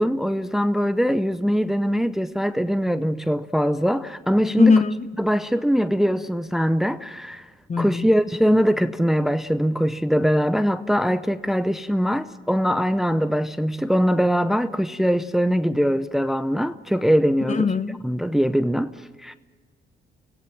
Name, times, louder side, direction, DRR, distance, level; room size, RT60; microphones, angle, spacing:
voice 1, 0.0-4.7 5.2-7.5 7.8-17.7 18.0-19.3, equal, ahead, 0.7 m, -22 dB
voice 2, 4.6-5.1 7.7-8.1 17.5-18.0, left 4 dB, 35° left, 1.1 m, -20 dB
26.0 x 17.0 x 7.5 m
cardioid pair, 90°, 20 cm